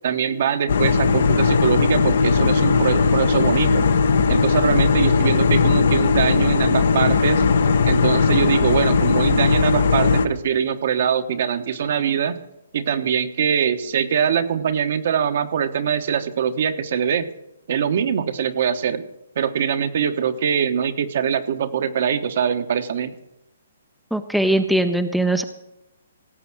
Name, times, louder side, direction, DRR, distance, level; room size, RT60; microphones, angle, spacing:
voice 1, 0.0-3.9 4.3-7.4 7.9-12.4 12.7-17.3 17.7-19.0 19.4-23.1, right 8 dB, 55° right, 9 dB, 1.1 m, -23 dB
sound 1, 0.7-10.3, left 4 dB, 70° left, 1.0 m, -18 dB
voice 2, 24.1-25.4, right 1 dB, ahead, 7 dB, 0.5 m, -20 dB
17.5 x 7.6 x 6.1 m, 0.86 s
hypercardioid pair, 155°, 0 cm